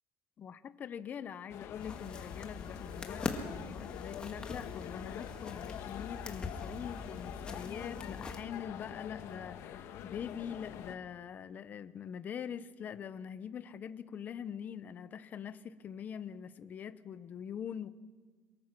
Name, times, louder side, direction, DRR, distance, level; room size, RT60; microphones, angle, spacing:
voice 1, 0.4-17.9, left 8 dB, 30° left, 13 dB, 0.8 m, -43 dB
sound 1, 1.5-10.9, left 10 dB, 55° left, 1.6 m, -45 dB
sound 2, 1.8-8.4, left 3 dB, 15° left, 1.8 m, -43 dB
24.0 x 22.5 x 6.0 m, 1.4 s
cardioid pair, 160°, 5 cm